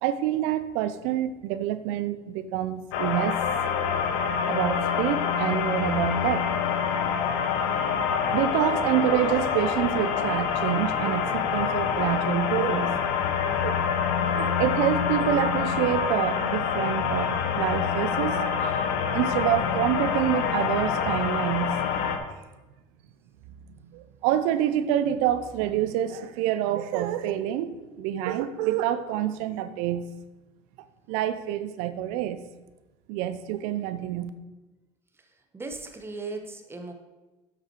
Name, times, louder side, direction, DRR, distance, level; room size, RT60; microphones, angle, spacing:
voice 1, 0.0-3.4 4.5-6.4 7.6-7.8 8.3-13.0 13.4-13.8 14.3-18.8 19.1-21.8 23.9-30.1 31.1-32.4 33.1-34.3, right 11 dB, 75° right, 12 dB, 0.7 m, -27 dB
sound 1, 2.9-22.2, left 7 dB, 80° left, 1.0 m, -26 dB
voice 2, 35.5-36.9, right 3 dB, 20° right, 5 dB, 1.3 m, -37 dB
7.6 x 6.1 x 4.6 m, 1.1 s
supercardioid pair, 90°, 13 cm